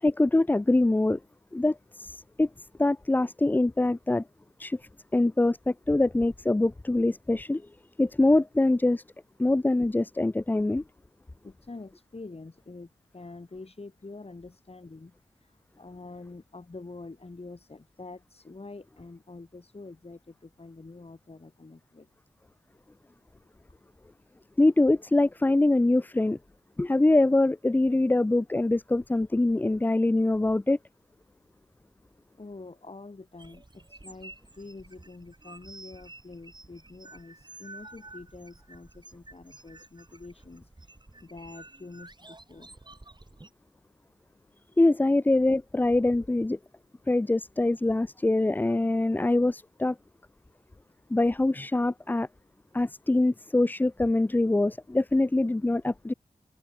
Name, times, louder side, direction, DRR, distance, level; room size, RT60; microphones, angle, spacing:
voice 1, 0.0-1.2 1.5-2.5 2.8-4.2 4.6-4.8 5.1-7.6 8.0-9.0 9.4-10.8 24.6-26.4 26.8-30.8 44.8-46.6 47.1-50.0 51.1-52.3 52.7-56.1, left 2 dB, 10° left, 0.3 m, -24 dB
voice 2, 11.4-22.1 32.4-41.0 41.2-42.8, left 3 dB, 45° left, 4.1 m, -46 dB
sound 1, 33.4-43.5, right 2 dB, 30° right, 6.0 m, -50 dB
cardioid pair, 50°, 15 cm